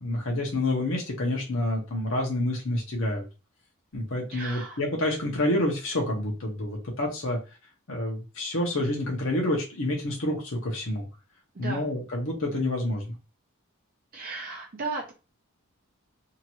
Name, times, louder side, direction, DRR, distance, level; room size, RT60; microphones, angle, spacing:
voice 1, 0.0-3.2 3.9-7.4 7.9-11.1 11.6-13.1, left 1 dB, 60° left, 0 dB, 0.9 m, -28 dB
voice 2, 4.3-4.8 11.5-11.9 14.1-15.1, right 3 dB, 40° right, 0 dB, 0.6 m, -35 dB
2.9 x 2.5 x 2.9 m, 0.30 s
head